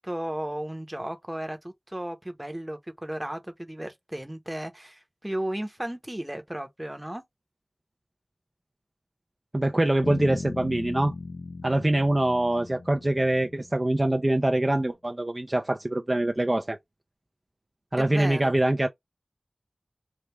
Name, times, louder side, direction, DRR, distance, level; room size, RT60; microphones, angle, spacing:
voice 1, 0.0-7.2 18.0-18.5, right 1 dB, 15° right, 0.9 m, -34 dB
voice 2, 9.5-11.1 11.6-16.8 17.9-18.9, right 1 dB, 30° right, 0.5 m, -24 dB
sound 1, 10.0-14.0, left 3 dB, 90° left, 0.4 m, -38 dB
3.3 x 2.4 x 3.0 m
wide cardioid pair, 65°, 0 cm